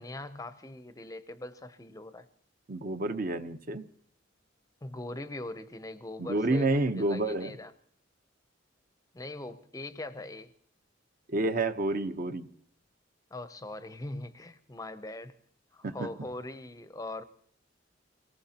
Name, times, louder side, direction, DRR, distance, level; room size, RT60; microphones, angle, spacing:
voice 1, 0.0-2.3 4.8-7.7 9.1-10.5 13.3-15.3 15.7-17.2, left 2 dB, 20° left, 11 dB, 0.6 m, -41 dB
voice 2, 2.7-3.9 6.2-7.6 11.3-12.5 15.8-16.1, right 2 dB, 45° right, 8 dB, 0.9 m, -29 dB
27.0 x 18.5 x 2.9 m, 0.62 s
head